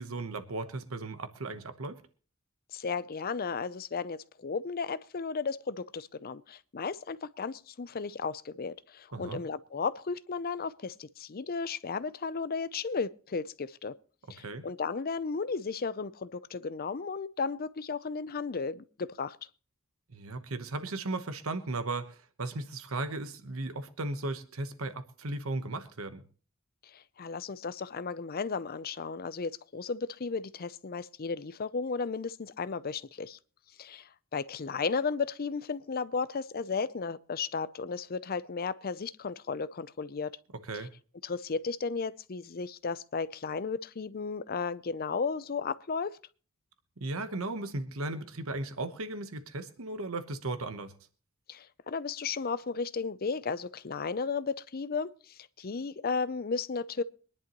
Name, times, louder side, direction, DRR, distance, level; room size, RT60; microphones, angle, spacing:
voice 1, 0.0-2.0 9.1-9.4 14.4-14.6 20.1-26.2 40.6-40.9 47.0-50.9, right 2 dB, 75° right, 1.1 m, -36 dB
voice 2, 2.7-14.0 14.3-19.4 26.9-33.4 33.8-40.3 41.2-46.2 51.5-57.0, left 5 dB, 45° left, 0.6 m, -34 dB
24.0 x 11.0 x 3.0 m
head